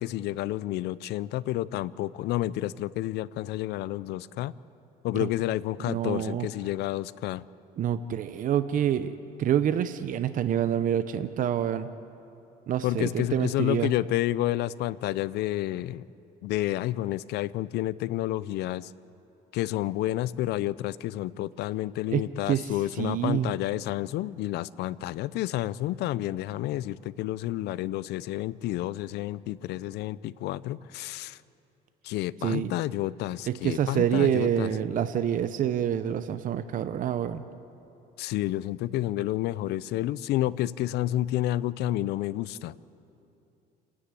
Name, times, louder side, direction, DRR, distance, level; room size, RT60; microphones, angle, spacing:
voice 1, 0.0-4.5 5.0-7.4 12.8-16.0 16.4-18.9 19.5-31.4 32.0-34.7 38.2-42.8, left 15 dB, 80° left, 19 dB, 0.5 m, -30 dB
voice 2, 5.8-6.5 7.8-11.9 12.7-13.9 22.1-22.7 23.0-23.5 32.4-32.7 33.5-37.4, right 10 dB, 50° right, 11 dB, 0.7 m, -27 dB
28.0 x 9.9 x 9.8 m, 2.8 s
cardioid pair, 110°, 17 cm